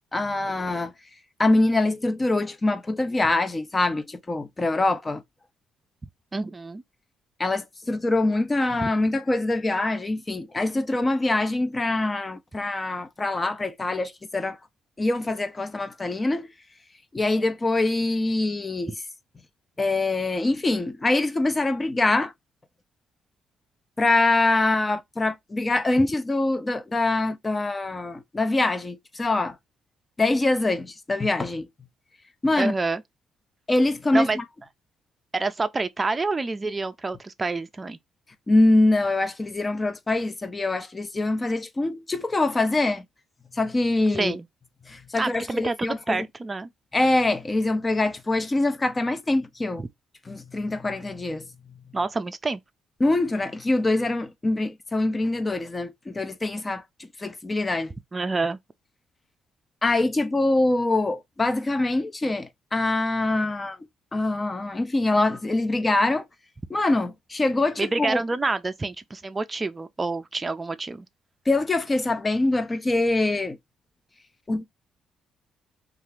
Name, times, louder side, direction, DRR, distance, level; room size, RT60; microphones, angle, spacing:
voice 1, 0.1-0.9 1.4-5.2 7.4-14.6 15.0-16.5 17.1-18.9 19.8-22.3 24.0-29.6 30.2-31.7 32.4-32.7 33.7-34.4 38.5-43.0 43.5-44.4 44.9-46.2 46.9-49.8 50.3-51.5 53.0-56.8 57.2-57.9 59.8-63.8 64.1-66.2 66.7-68.2 71.5-73.6 74.5-74.6, left 2 dB, 25° left, 0.5 m, -24 dB
voice 2, 6.3-6.8 8.8-8.9 32.6-33.0 34.1-34.4 35.3-38.0 44.1-44.4 45.2-46.7 49.8-49.9 51.9-52.6 58.1-58.6 67.8-71.1, right 3 dB, 25° right, 0.4 m, -27 dB
2.8 x 2.4 x 3.2 m
cardioid pair, 90°, 0 cm